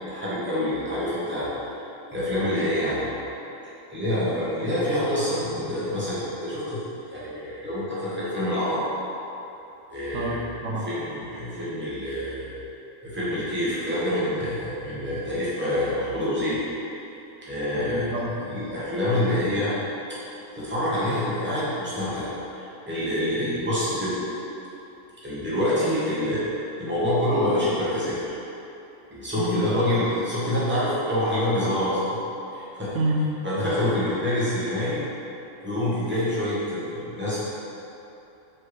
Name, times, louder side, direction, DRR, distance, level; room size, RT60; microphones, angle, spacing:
voice 1, 0.1-1.5 2.1-3.1 3.9-6.8 7.1-8.9 9.9-10.4 10.8-12.5 13.0-16.6 17.4-18.1 18.5-19.7 20.5-24.1 25.2-26.5 26.8-28.3 29.1-32.2 32.5-32.9 33.4-35.0 35.6-37.5, left 1 dB, 10° right, -10 dB, 0.9 m, -26 dB
voice 2, 10.1-10.9 17.7-18.7 23.4-23.5 29.4-29.7 32.9-33.4, right 1 dB, 75° right, 0 dB, 0.9 m, -28 dB
4.4 x 3.3 x 3.1 m, 3.0 s
omnidirectional pair, 1.4 m